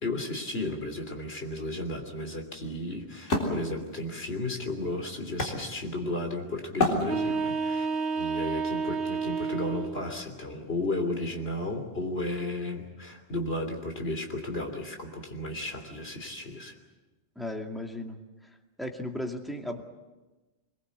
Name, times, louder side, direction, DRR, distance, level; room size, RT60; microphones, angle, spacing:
voice 1, 0.0-7.9 8.2-16.8, left 1 dB, 60° left, 4 dB, 3.5 m, -34 dB
Wood, 1.5-6.2 6.8-7.7, left 2 dB, 80° left, 4.2 m, -31 dB
sound 1, 7.0-10.0, right 5 dB, 70° right, 1.6 m, -30 dB
voice 2, 17.4-18.2 18.8-19.8, left 1 dB, ahead, 2 dB, 2.2 m, -35 dB
24.0 x 22.0 x 8.2 m, 1.2 s
omnidirectional pair, 1.2 m